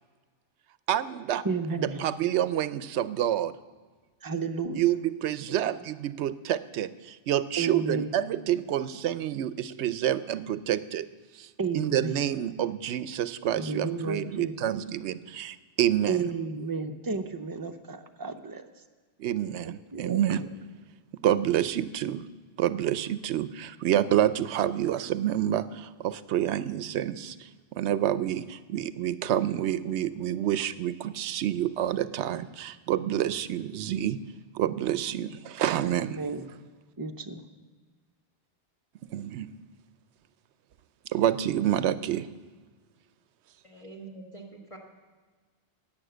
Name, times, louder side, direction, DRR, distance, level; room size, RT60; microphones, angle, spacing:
voice 1, 0.9-1.4 1.8-3.6 4.7-11.1 11.3-16.3 19.2-20.5 21.2-22.3 22.6-34.2 34.5-36.2 39.0-39.5 41.1-42.3, right 11 dB, 75° right, 15 dB, 0.9 m, -28 dB
voice 2, 1.4-2.0 4.2-4.8 5.5-5.6 7.6-8.1 11.6-12.2 13.6-14.5 16.1-18.6 19.6-20.4 35.8-36.5 37.0-37.4, right 4 dB, 25° right, 7 dB, 0.6 m, -32 dB
voice 3, 43.6-44.8, right 3 dB, 30° left, 0 dB, 1.6 m, -45 dB
11.5 x 9.2 x 7.8 m, 1.4 s
omnidirectional pair, 1.2 m